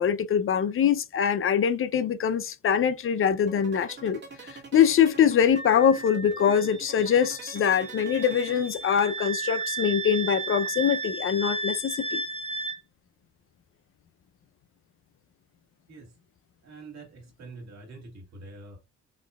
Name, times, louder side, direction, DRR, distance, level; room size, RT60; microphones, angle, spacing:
voice 1, 0.0-12.2, left 8 dB, 45° left, 0.4 m, -23 dB
sound 1, 3.3-9.2, right 4 dB, 35° right, 1.7 m, -44 dB
Wind instrument woodwind instrument, 5.5-12.8, right 3 dB, 20° right, 1.1 m, -34 dB
voice 2, 16.6-18.8, right 3 dB, 60° right, 2.1 m, -45 dB
4.3 x 3.0 x 2.2 m
cardioid pair, 90°, 30 cm